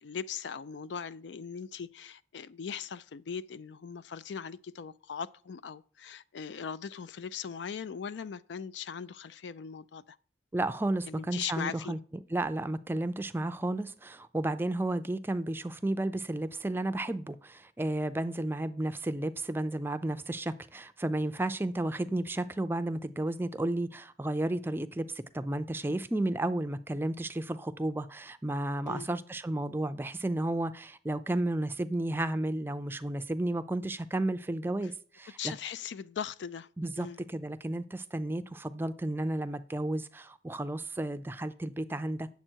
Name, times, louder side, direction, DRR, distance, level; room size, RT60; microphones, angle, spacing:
voice 1, 0.0-10.2 11.1-12.0 28.8-29.1 35.4-36.7 37.0-37.2, left 7 dB, 85° left, 0.4 m, -39 dB
voice 2, 10.5-12.0 12.3-25.1 25.3-35.5 36.8-42.3, right 1 dB, 10° right, 0.4 m, -32 dB
8.8 x 7.0 x 4.5 m
head